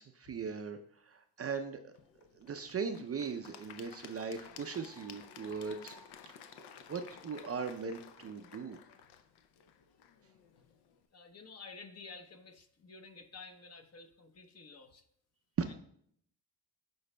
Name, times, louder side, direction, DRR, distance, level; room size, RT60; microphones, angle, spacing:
voice 1, 0.0-1.9 2.3-6.0 6.9-8.8 15.6-15.7, right 5 dB, 35° right, 7 dB, 0.5 m, -39 dB
Applause / Crowd, 1.9-11.0, left 7 dB, 65° left, 0.7 m, -54 dB
voice 2, 11.1-15.1 15.7-15.8, left 4 dB, 35° left, 7 dB, 0.9 m, -52 dB
11.5 x 4.0 x 2.2 m, 0.66 s
supercardioid pair, 70°, 42 cm